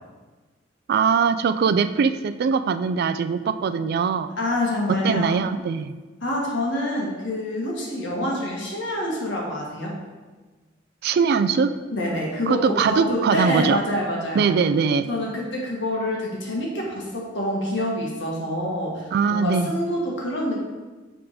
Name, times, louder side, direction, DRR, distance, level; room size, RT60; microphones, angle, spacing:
voice 1, 0.9-4.3 4.9-5.9 11.0-11.7 12.5-13.8 14.3-15.1 19.1-19.7, right 6 dB, 55° right, 11 dB, 0.3 m, -21 dB
voice 2, 4.3-5.4 6.2-9.9 11.9-14.6 15.1-20.6, left 1 dB, 65° left, -2 dB, 1.6 m, -26 dB
6.9 x 3.6 x 5.0 m, 1.3 s
head